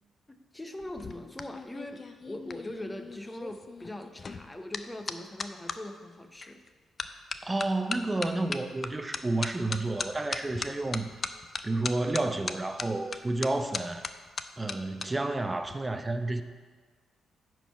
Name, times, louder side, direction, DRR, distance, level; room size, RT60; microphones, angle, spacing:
voice 1, 0.3-6.6, left 1 dB, 15° left, 7 dB, 0.8 m, -41 dB
sound 1, 0.8-5.8 6.4-6.7 7.0-15.1 15.4-15.7, left 4 dB, 45° left, 0.5 m, -38 dB
voice 2, 7.4-11.1 11.6-14.0 14.6-16.4, right 2 dB, 20° right, 9 dB, 0.6 m, -30 dB
9.9 x 4.7 x 5.6 m, 1.5 s
cardioid pair, 75°, 0 cm